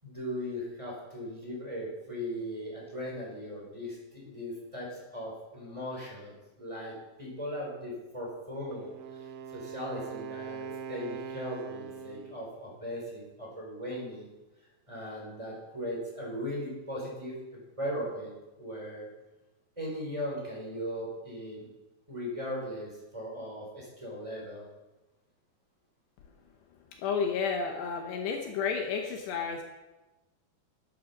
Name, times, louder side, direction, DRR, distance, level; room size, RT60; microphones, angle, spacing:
voice 1, 0.0-9.3 9.5-14.3 14.9-19.1 19.8-21.7 22.1-24.7, equal, 5° right, -3 dB, 4.0 m, -38 dB
Wind instrument woodwind instrument, 8.7-12.5, right 6 dB, 85° right, 3.2 m, -42 dB
voice 2, 27.0-29.6, left 6 dB, 75° left, 3 dB, 3.0 m, -31 dB
12.5 x 11.0 x 5.1 m, 1.1 s
omnidirectional pair, 5.2 m